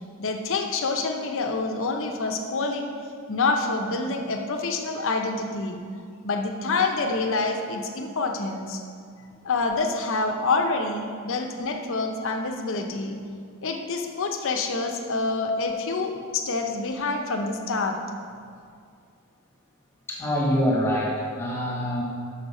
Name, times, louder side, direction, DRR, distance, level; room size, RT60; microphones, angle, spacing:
voice 1, 0.2-2.9 3.3-5.8 6.2-8.8 9.4-13.2 13.6-18.0, left 3 dB, 60° left, 4 dB, 0.8 m, -27 dB
voice 2, 20.1-22.0, equal, 10° left, -4 dB, 1.2 m, -25 dB
6.5 x 6.3 x 5.4 m, 2.2 s
head